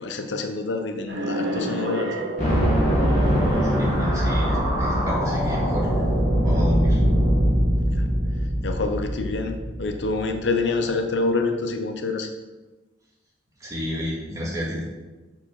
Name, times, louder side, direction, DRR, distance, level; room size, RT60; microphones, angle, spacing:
voice 1, 0.0-2.2 7.9-8.1 8.6-12.3, left 3 dB, 70° left, 5 dB, 0.7 m, -27 dB
sound 1, 1.1-4.4, right 1 dB, 60° right, 1.4 m, -30 dB
sound 2, 2.4-10.4, equal, 40° left, 2.2 m, -22 dB
voice 2, 3.6-6.0 6.4-7.0 13.6-14.8, left 1 dB, 20° right, -5 dB, 2.0 m, -31 dB
6.6 x 4.9 x 5.6 m, 1.2 s
head